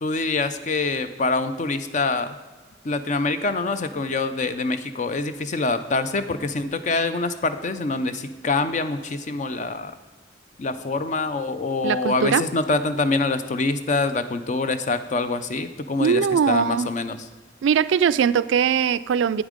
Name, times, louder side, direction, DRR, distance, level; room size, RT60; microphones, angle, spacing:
voice 1, 0.0-2.3 2.8-9.9 10.6-17.2, left 3 dB, 40° left, 11 dB, 0.5 m, -25 dB
voice 2, 11.8-12.4 16.0-16.9 17.6-19.4, right 7 dB, 85° right, 17 dB, 0.3 m, -20 dB
8.6 x 8.2 x 5.1 m, 1.3 s
head